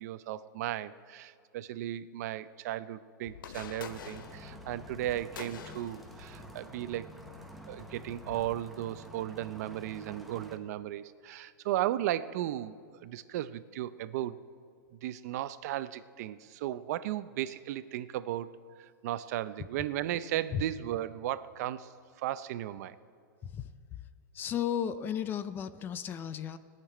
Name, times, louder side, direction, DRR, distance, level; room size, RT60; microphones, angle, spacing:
voice 1, 0.0-7.1 7.7-12.7 13.0-14.4 14.9-18.5 18.8-21.9 22.2-23.0, right 13 dB, 50° right, 15 dB, 0.5 m, -35 dB
sound 1, 3.3-8.6, left 7 dB, 80° left, 0.9 m, -48 dB
sound 2, 3.9-10.6, equal, ahead, 0.9 m, -49 dB
voice 2, 24.3-26.6, left 9 dB, 20° left, 13 dB, 0.4 m, -34 dB
19.0 x 6.7 x 8.9 m, 2.1 s
hypercardioid pair, 150°, 11 cm